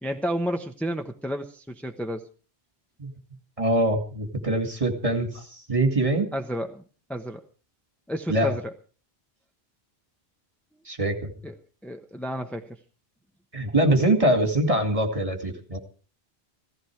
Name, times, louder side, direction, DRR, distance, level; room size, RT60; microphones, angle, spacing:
voice 1, 0.0-2.3 6.3-6.8 7.1-7.4 8.1-8.7 11.4-11.5 11.8-12.8, equal, ahead, 4 dB, 1.1 m, -31 dB
voice 2, 3.6-6.3 8.3-8.6 10.9-11.3 13.5-15.8, right 1 dB, 35° right, 4 dB, 2.5 m, -23 dB
16.5 x 15.0 x 4.7 m, 0.38 s
omnidirectional pair, 1.1 m